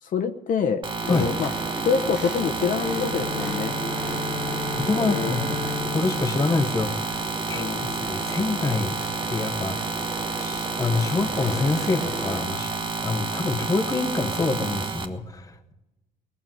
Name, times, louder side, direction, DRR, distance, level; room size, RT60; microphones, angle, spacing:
voice 1, 0.0-1.5 1.8-3.7 5.0-5.3 7.5-7.9, left 6 dB, 50° left, 6 dB, 0.9 m, -26 dB
sound 1, 0.8-15.0, right 3 dB, 30° right, 1.3 m, -30 dB
sound 2, 1.0-12.4, right 1 dB, 5° right, 2.3 m, -38 dB
Bowed string instrument, 2.8-7.6, left 4 dB, 55° right, 1.2 m, -34 dB
voice 2, 4.8-5.6 5.9-9.0 9.3-9.9 10.4-12.7 13.0-15.7, left 3 dB, 20° left, 7 dB, 1.1 m, -26 dB
19.0 x 7.0 x 9.1 m, 1.0 s
cardioid pair, 110°, 17 cm